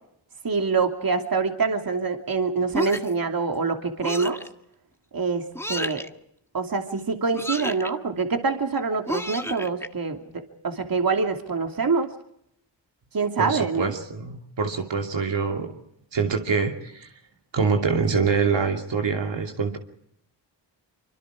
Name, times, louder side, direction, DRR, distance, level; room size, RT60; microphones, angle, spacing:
voice 1, 0.4-4.4 5.1-6.0 6.5-12.1 13.1-14.0, right 4 dB, 50° right, 4 dB, 2.8 m, -25 dB
sound 1, 2.7-3.2 4.0-4.5 5.5-6.1 7.3-7.9 9.1-9.9, left 1 dB, 5° left, 1.5 m, -31 dB
voice 2, 13.4-15.7 16.1-17.1 17.5-19.8, right 5 dB, 75° right, 2 dB, 2.8 m, -25 dB
25.5 x 24.5 x 4.9 m, 0.73 s
cardioid pair, 50°, 44 cm